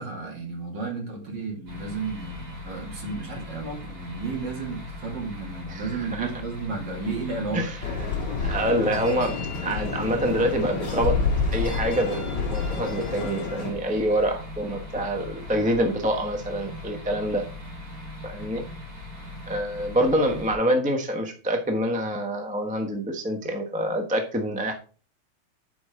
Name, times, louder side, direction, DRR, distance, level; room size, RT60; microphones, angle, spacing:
voice 1, 0.0-7.6, right 4 dB, 55° right, 0 dB, 3.0 m, -33 dB
sound 1, 1.7-20.5, left 1 dB, 80° right, 4.8 m, -40 dB
voice 2, 5.7-6.3 7.5-7.8 8.0-8.1 8.4-9.3 9.6-11.2 11.5-17.4 18.2-18.6 19.5-24.7, right 1 dB, 10° right, 4 dB, 0.5 m, -26 dB
sound 2, 7.8-13.7, left 4 dB, 55° left, 2.4 m, -28 dB
11.0 x 5.1 x 3.7 m, 0.37 s
omnidirectional pair, 2.4 m